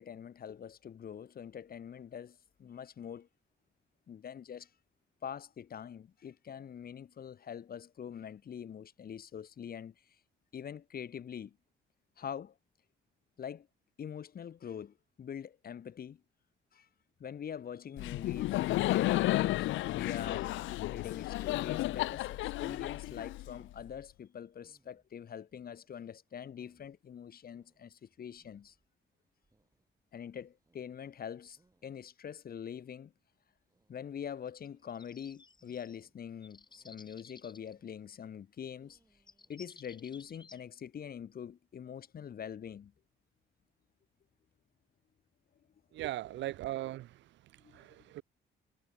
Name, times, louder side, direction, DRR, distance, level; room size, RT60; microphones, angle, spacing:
voice 1, 0.0-3.3 4.1-4.7 5.2-9.9 10.5-11.6 12.2-12.5 13.4-13.7 14.0-16.2 16.7-16.9 17.2-20.6 20.9-28.7 30.1-33.1 33.9-39.0 39.5-42.9 47.6-47.8, left 8 dB, 50° left, 1.2 m, -44 dB
Laughter, 18.0-23.8, left 17 dB, 75° left, 0.4 m, -32 dB
sound 1, 24.3-40.5, right 2 dB, 15° right, 7.1 m, -75 dB
sound 2, 34.5-36.0 36.4-37.7 38.9-39.0 39.3-40.6, left 4 dB, 20° left, 1.2 m, -56 dB
voice 2, 45.9-48.2, right 15 dB, 70° right, 0.4 m, -40 dB
cardioid pair, 90°, 20 cm